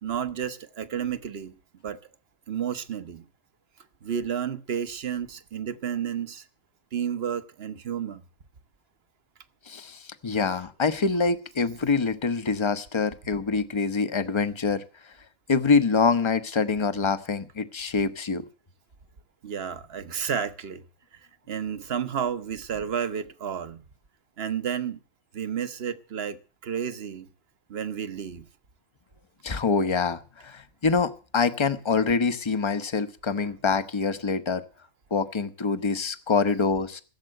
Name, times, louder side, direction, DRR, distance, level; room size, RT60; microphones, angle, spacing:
voice 1, 0.0-1.5 1.8-2.0 2.5-3.2 4.0-6.4 6.9-8.2 10.4-10.6 11.1-11.2 19.4-20.8 21.1-21.2 21.5-23.8 24.4-25.0 25.3-26.4 26.6-27.3 27.7-28.5 33.4-33.5, right 8 dB, 50° right, 1.1 m, -31 dB
voice 2, 9.7-14.8 15.5-18.4 29.4-34.6 35.1-37.0, left 4 dB, 25° left, 0.8 m, -25 dB
15.5 x 7.5 x 7.7 m
omnidirectional pair, 1.4 m